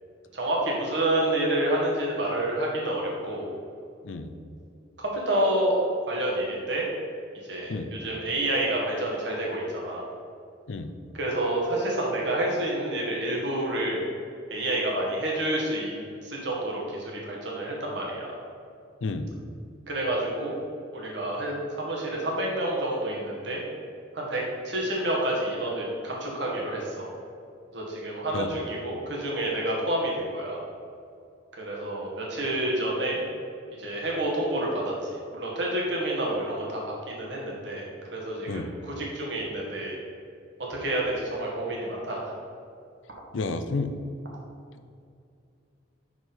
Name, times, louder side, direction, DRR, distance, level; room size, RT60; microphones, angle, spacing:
voice 1, 0.3-3.5 5.0-5.7 6.1-6.8 7.5-10.1 11.1-14.0 14.5-18.4 19.9-20.5 20.9-23.6 24.1-27.1 27.7-30.6 31.6-33.2 33.8-40.0 40.7-42.3, right 1 dB, 65° right, -3 dB, 1.7 m, -29 dB
voice 2, 43.3-43.9, left 3 dB, 85° left, 9 dB, 0.5 m, -30 dB
6.1 x 5.2 x 5.5 m, 2.4 s
head